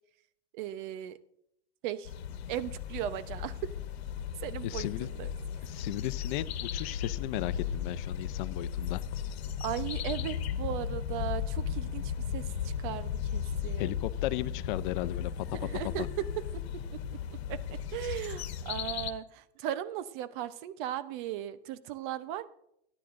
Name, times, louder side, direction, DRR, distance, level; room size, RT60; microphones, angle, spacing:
voice 1, 0.5-1.2 1.8-2.1 2.5-3.6 4.4-5.3 5.6-5.7 9.6-13.9 15.5-16.3 16.5-17.0 17.5-22.5, right 11 dB, 50° right, 14 dB, 0.9 m, -37 dB
sound 1, 2.0-19.1, left 8 dB, 70° left, 1.3 m, -36 dB
voice 2, 4.6-5.1 5.6-9.2 13.8-15.5 15.8-16.1, left 16 dB, 50° left, 15 dB, 0.7 m, -35 dB
29.5 x 9.9 x 2.6 m, 0.77 s
hypercardioid pair, 120°, 32 cm